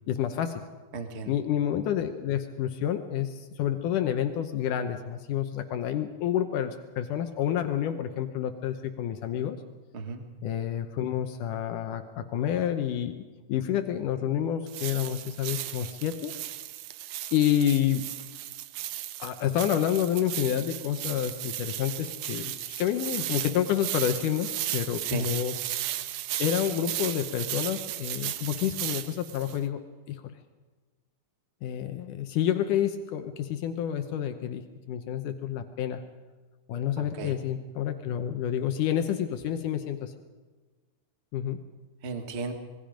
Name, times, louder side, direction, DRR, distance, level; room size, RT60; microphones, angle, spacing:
voice 1, 0.1-0.6 1.3-9.6 10.4-13.2 13.5-16.3 17.3-18.1 19.2-25.5 26.4-29.8 30.1-30.4 31.6-36.0 36.7-40.1 41.3-41.6, left 10 dB, 75° left, 7 dB, 2.4 m, -29 dB
voice 2, 0.9-1.3 9.9-10.2 25.0-25.3 37.0-37.4 42.0-42.5, right 4 dB, 35° right, 6 dB, 1.1 m, -35 dB
sound 1, 14.7-29.6, right 13 dB, 75° right, 1.5 m, -35 dB
26.0 x 21.5 x 5.1 m, 1.3 s
omnidirectional pair, 3.8 m